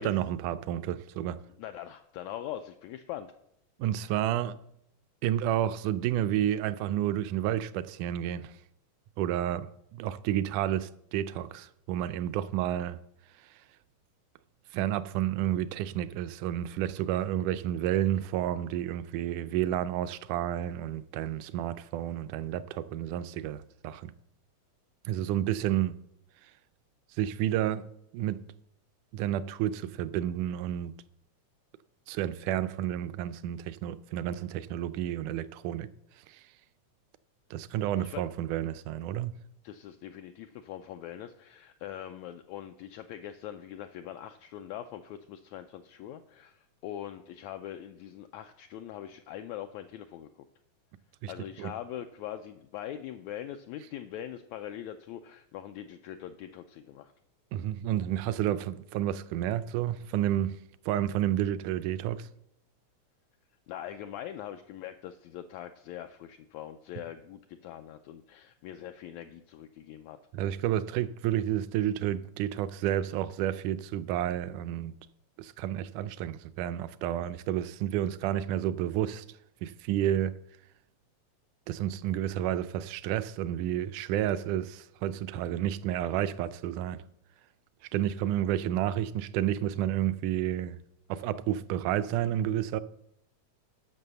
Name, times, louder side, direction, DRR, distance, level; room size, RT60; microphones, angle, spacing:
voice 1, 0.0-1.4 3.8-4.6 5.2-8.6 9.2-13.0 14.7-24.1 25.1-26.0 27.2-27.9 28.1-28.4 29.1-30.9 32.1-35.9 36.3-36.4 37.5-39.4 51.2-51.3 51.6-51.7 57.5-60.6 60.9-62.3 70.3-74.9 75.4-79.3 79.6-80.3 81.7-87.0 87.9-90.8 91.1-92.8, right 11 dB, 80° right, 1.9 m, -30 dB
voice 2, 1.6-3.3 38.0-38.2 39.6-50.3 51.3-57.1 63.7-70.2, left 11 dB, 85° left, 1.6 m, -42 dB
11.0 x 6.2 x 6.7 m
omnidirectional pair, 3.7 m